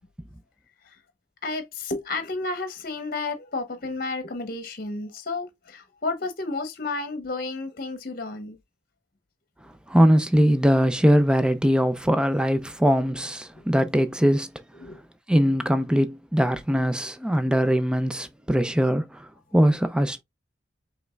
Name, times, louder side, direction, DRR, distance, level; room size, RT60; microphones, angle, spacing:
voice 1, 1.4-8.6 13.5-13.6 14.7-15.0, left 3 dB, 50° left, 0.9 m, -32 dB
voice 2, 9.9-14.5 15.3-20.2, equal, 5° right, 0.4 m, -21 dB
5.2 x 3.4 x 2.2 m
head